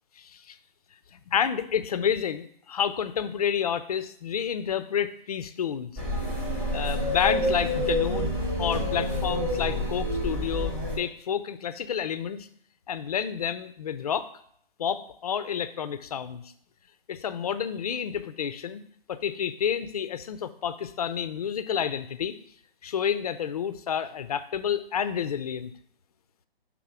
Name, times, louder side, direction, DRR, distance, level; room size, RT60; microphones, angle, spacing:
voice 1, 0.2-0.6 1.1-5.9 6.7-12.5 12.9-14.3 14.8-16.4 17.1-18.8 19.1-22.4 22.8-25.7, left 8 dB, 40° left, 12 dB, 0.4 m, -29 dB
sound 1, 6.0-11.0, left 1 dB, 10° right, 0.8 m, -28 dB
5.6 x 3.6 x 4.7 m, 0.66 s
hypercardioid pair, 145°, 30 cm